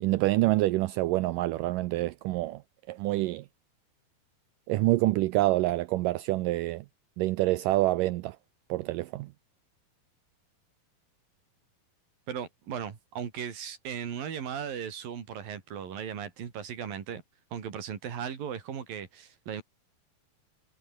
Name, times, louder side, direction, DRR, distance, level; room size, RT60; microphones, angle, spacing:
voice 1, 0.0-2.6 2.9-3.5 4.7-6.9 7.2-8.4 8.7-9.3, right 18 dB, 90° right, 1.9 m, -26 dB
voice 2, 12.3-17.2 17.5-19.6, right 8 dB, 65° right, 4.7 m, -37 dB
omnidirectional pair, 4.4 m